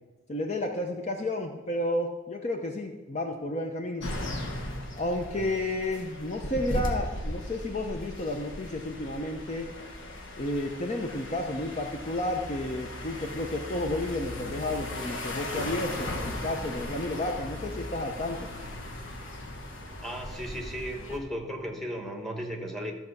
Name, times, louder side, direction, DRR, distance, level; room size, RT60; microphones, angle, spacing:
voice 1, 0.3-4.1 4.9-9.7 10.4-18.5, left 1 dB, 35° left, 3 dB, 0.7 m, -32 dB
sound 1, 4.0-21.2, left 1 dB, 65° left, 1.5 m, -37 dB
voice 2, 20.0-22.9, equal, ahead, 2 dB, 1.1 m, -35 dB
13.5 x 4.7 x 6.6 m, 1.2 s
head